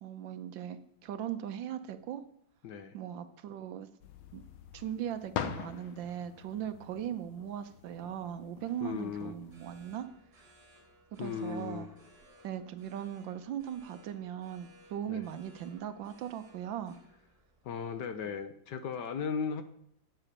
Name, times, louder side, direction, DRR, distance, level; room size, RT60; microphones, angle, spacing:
voice 1, 0.0-2.2 2.9-3.9 4.3-4.4 4.7-10.1 11.1-11.9 12.4-17.0, right 10 dB, 70° right, 11 dB, 1.4 m, -39 dB
voice 2, 2.6-3.0 8.8-9.4 11.2-11.9 15.1-15.3 17.6-19.6, left 6 dB, 65° left, 10 dB, 1.2 m, -36 dB
sound 1, 4.0-10.0, left 8 dB, 80° left, 1.7 m, -44 dB
sound 2, 8.8-18.4, right 1 dB, 35° right, 2.8 m, -61 dB
9.0 x 7.9 x 6.6 m, 0.68 s
omnidirectional pair, 2.3 m